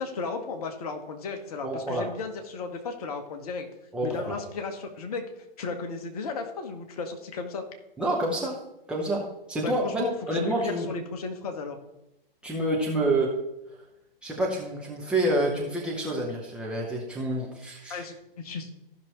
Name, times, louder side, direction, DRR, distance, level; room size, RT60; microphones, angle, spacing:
voice 1, 0.0-3.7 4.0-5.2 5.6-7.6 9.6-11.8 17.9-18.8, left 4 dB, 40° left, 5 dB, 1.2 m, -34 dB
voice 2, 1.6-2.1 3.9-4.4 8.0-8.6 8.9-10.0 10.3-10.9 12.4-13.4 14.2-18.1, right 1 dB, 5° right, -4 dB, 0.8 m, -28 dB
14.5 x 5.9 x 3.1 m, 0.89 s
figure-of-eight pair, 120°, 30 cm